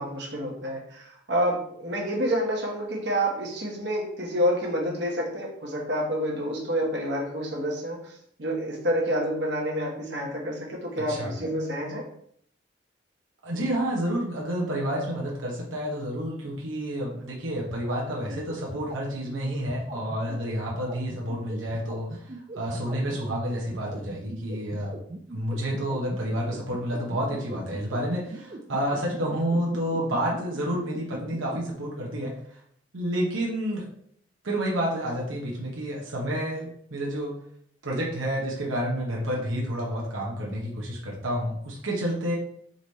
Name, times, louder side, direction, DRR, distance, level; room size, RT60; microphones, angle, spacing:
voice 1, 0.0-8.1 8.4-12.0, equal, 60° right, -2 dB, 1.2 m, -28 dB
voice 2, 11.0-11.3 13.4-24.9 25.3-32.3 32.9-33.8 34.4-37.3 37.8-42.4, equal, 90° right, -3 dB, 1.0 m, -29 dB
sound 1, 17.7-31.6, right 2 dB, 35° right, 0.5 m, -40 dB
4.0 x 3.2 x 4.0 m, 0.66 s
head